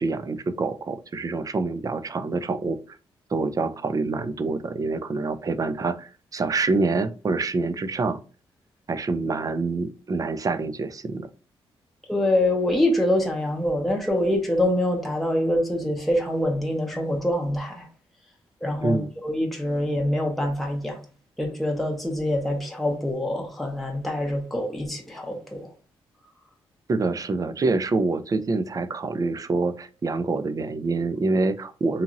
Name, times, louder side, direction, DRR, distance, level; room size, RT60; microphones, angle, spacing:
voice 1, 0.0-2.8 3.3-8.2 8.9-11.3 18.8-19.1 26.9-32.0, right 3 dB, 35° right, 0.4 m, -26 dB
voice 2, 12.1-17.9 18.6-21.0 21.4-25.7, left 1 dB, ahead, 0.7 m, -25 dB
2.8 x 2.7 x 2.5 m
cardioid pair, 65°, 10 cm